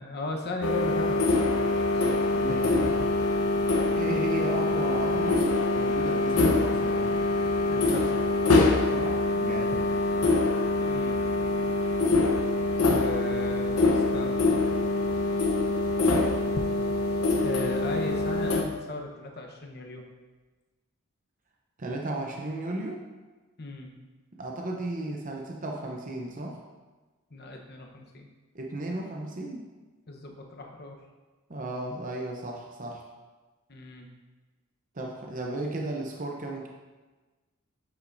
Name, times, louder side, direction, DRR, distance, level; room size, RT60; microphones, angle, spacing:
voice 1, 0.0-2.3 6.3-6.5 7.7-8.1 10.9-11.2 12.8-14.4 17.4-20.0 23.6-23.9 27.3-28.3 30.1-31.0 33.7-34.1, left 2 dB, 45° left, 2 dB, 1.0 m, -36 dB
sound 1, 0.6-18.6, left 2 dB, 75° left, 0.9 m, -25 dB
voice 2, 2.3-2.9 4.0-7.1 8.9-9.9 21.8-23.0 24.3-26.6 28.5-29.7 31.5-33.0 34.9-36.7, right 2 dB, 35° right, 0 dB, 0.7 m, -35 dB
8.3 x 8.0 x 2.6 m, 1.2 s
head